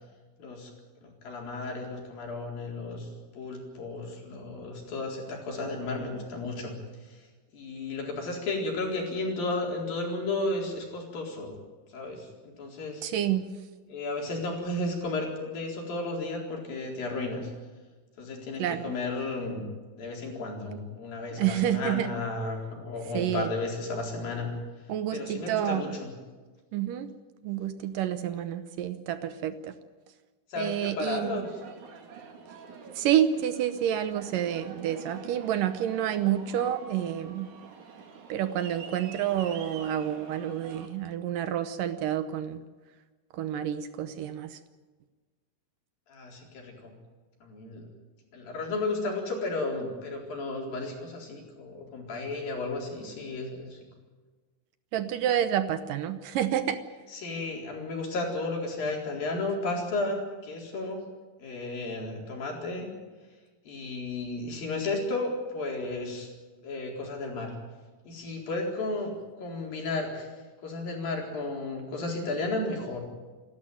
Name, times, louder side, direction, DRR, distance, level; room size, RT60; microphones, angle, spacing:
voice 1, 0.4-0.7 1.0-6.7 7.0-7.3 7.5-11.5 11.9-13.0 13.9-17.5 18.2-19.7 20.0-24.5 25.1-26.1 30.5-31.6 46.1-46.9 47.4-47.9 48.3-53.8 57.1-61.0 61.4-62.9 63.7-66.3 66.6-67.5 68.1-70.3 70.6-73.0, left 2 dB, 70° left, 0 dB, 5.9 m, -33 dB
voice 2, 13.0-13.4 18.6-18.9 21.4-22.1 23.1-23.5 24.9-25.8 26.7-27.1 27.4-29.7 30.6-31.4 33.0-37.5 38.3-42.6 43.3-44.6 54.9-56.8, right 10 dB, 70° right, 10 dB, 2.4 m, -29 dB
Aircraft, 31.4-40.9, right 6 dB, 55° right, 3.6 m, -47 dB
28.5 x 12.5 x 9.4 m, 1.4 s
omnidirectional pair, 4.3 m